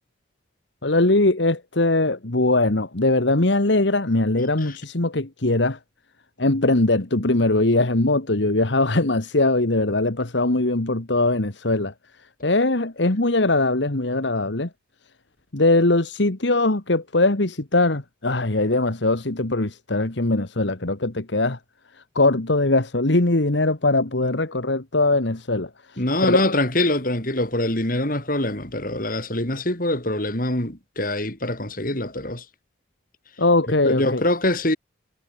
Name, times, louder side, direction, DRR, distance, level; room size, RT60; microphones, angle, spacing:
voice 1, 0.8-5.8 6.4-11.9 12.4-14.7 15.5-21.6 22.1-25.7 26.2-26.5 33.4-34.2, left 2 dB, 70° left, 1.7 m, -21 dB
voice 2, 26.0-32.4 33.7-34.8, left 1 dB, 45° left, 5.1 m, -24 dB
head